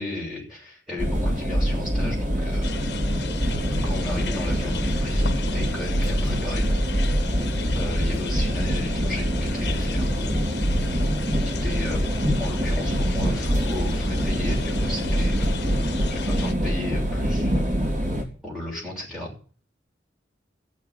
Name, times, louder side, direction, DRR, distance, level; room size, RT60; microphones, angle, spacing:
voice 1, 0.0-2.8 3.8-6.7 7.7-10.3 10.8-11.0 11.5-12.0 12.4-15.5 16.1-17.5 18.4-19.3, left 1 dB, 5° right, -5 dB, 6.9 m, -35 dB
sound 1, 1.0-18.2, equal, 45° right, 3.9 m, -24 dB
sound 2, 2.6-16.5, left 3 dB, 65° left, 1.1 m, -33 dB
15.0 x 6.4 x 9.7 m, 0.41 s
head